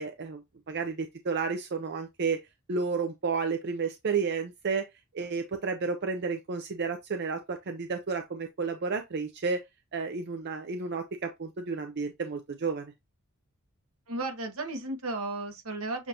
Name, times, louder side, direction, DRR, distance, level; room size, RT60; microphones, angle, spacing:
voice 1, 0.0-2.4 2.7-4.8 5.1-9.6 9.9-12.9, right 4 dB, 50° right, 0.6 m, -31 dB
voice 2, 14.1-16.1, right 2 dB, 80° right, 1.2 m, -34 dB
7.1 x 2.6 x 2.9 m
head